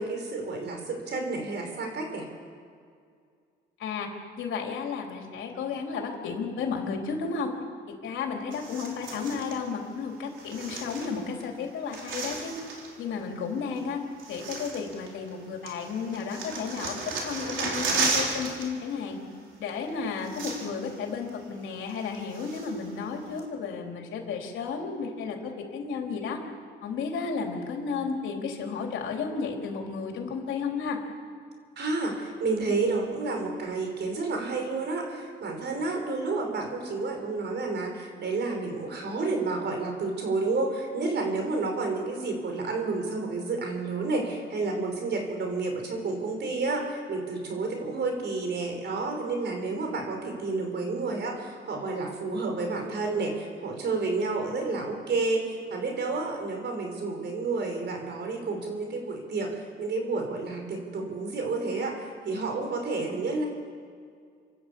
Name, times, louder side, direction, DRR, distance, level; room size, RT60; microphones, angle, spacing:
voice 1, 0.0-2.3 31.8-63.5, right 3 dB, 60° right, 3 dB, 5.5 m, -30 dB
voice 2, 4.4-7.5 8.0-12.5 13.0-14.0 14.3-19.2 19.6-26.4 26.8-31.0, left 5 dB, 80° left, 1 dB, 3.8 m, -33 dB
sound 1, 8.5-9.6 10.4-11.4 11.7-12.9 13.8-13.9 14.2-15.4 15.7-18.7 18.9-19.1 19.9-20.0 20.2-20.9 21.3-21.4 21.9-22.9 23.4-23.5, right 4 dB, 75° right, 4.6 m, -33 dB
28.0 x 11.0 x 8.6 m, 2.2 s
cardioid pair, 90°, 20 cm